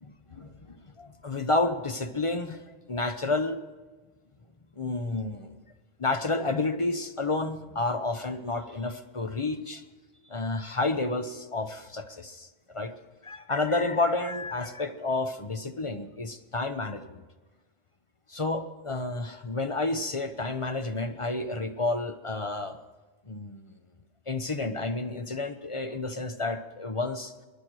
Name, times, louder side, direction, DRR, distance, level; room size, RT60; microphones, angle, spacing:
voice 1, 0.0-2.6 2.9-3.6 4.8-5.6 6.0-9.8 10.3-12.9 13.2-17.2 18.3-22.8 23.3-23.8 24.3-27.3, left 2 dB, 30° left, 7 dB, 0.8 m, -30 dB
25.5 x 10.5 x 4.7 m, 1.3 s
omnidirectional pair, 1.2 m